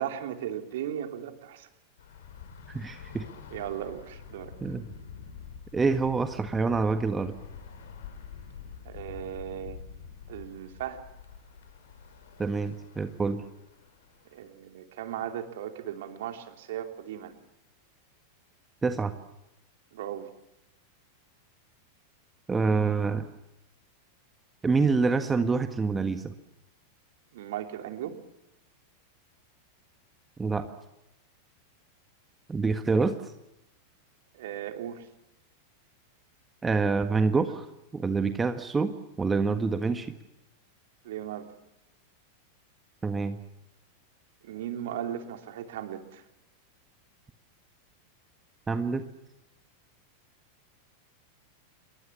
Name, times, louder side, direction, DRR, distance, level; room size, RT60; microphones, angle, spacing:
voice 1, 0.0-1.7 3.5-4.5 8.8-9.8 10.3-11.0 14.3-17.3 19.9-20.3 27.3-28.2 34.3-35.1 41.0-41.4 44.4-46.2, right 10 dB, 55° right, 6 dB, 3.0 m, -36 dB
Bus / Traffic noise roadway noise, 2.0-14.5, left 6 dB, 60° left, 5.2 m, -47 dB
voice 2, 2.7-3.2 4.6-4.9 5.7-7.3 12.4-13.4 18.8-19.1 22.5-23.3 24.6-26.3 30.4-30.6 32.5-33.1 36.6-37.7 37.9-40.1 43.0-43.4 48.7-49.0, right 4 dB, 15° right, 8 dB, 1.6 m, -26 dB
28.5 x 22.5 x 7.2 m, 0.91 s
figure-of-eight pair, 90°, 0 cm